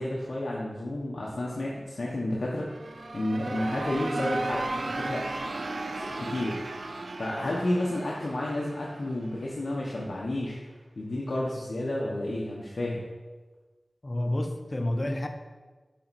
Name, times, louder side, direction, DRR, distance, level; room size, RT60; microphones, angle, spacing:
voice 1, 0.0-2.7 3.1-5.3 5.9-6.6 7.2-10.6 11.0-13.0, left 1 dB, 70° left, -4 dB, 1.0 m, -31 dB
sound 1, 2.6-9.4, right 2 dB, 70° right, 0.5 m, -35 dB
voice 2, 14.0-15.3, left 1 dB, 40° left, 6 dB, 0.7 m, -30 dB
7.6 x 4.3 x 4.2 m, 1.3 s
wide cardioid pair, 50°, 0 cm